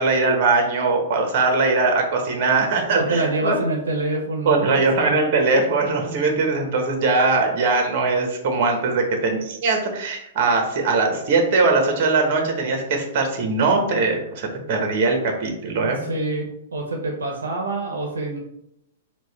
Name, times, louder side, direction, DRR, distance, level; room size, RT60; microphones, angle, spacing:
voice 1, 0.0-3.6 4.4-16.0, right 3 dB, 50° right, 3 dB, 1.3 m, -21 dB
voice 2, 2.9-5.1 16.0-18.4, right 2 dB, 85° right, 0 dB, 0.9 m, -26 dB
4.6 x 2.5 x 4.2 m, 0.79 s
hypercardioid pair, 115°, 0 cm